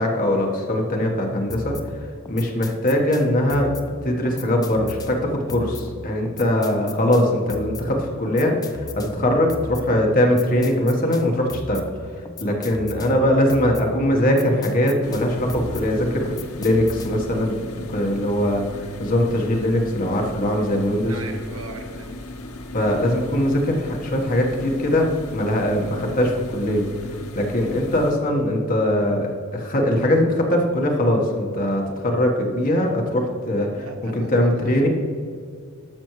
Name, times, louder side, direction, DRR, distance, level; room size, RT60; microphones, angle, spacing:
voice 1, 0.0-1.8 2.3-3.7 4.0-11.8 12.4-21.2 22.7-26.8 27.3-34.9, left 1 dB, 40° left, 0 dB, 1.3 m, -21 dB
sound 1, 1.5-17.4, left 3 dB, 15° left, 0.4 m, -37 dB
sound 2, 15.0-28.1, left 2 dB, 85° left, 0.8 m, -37 dB
voice 2, 21.1-22.3 33.7-34.9, right 3 dB, 75° right, 4 dB, 1.0 m, -39 dB
12.0 x 6.2 x 3.1 m, 2.2 s
head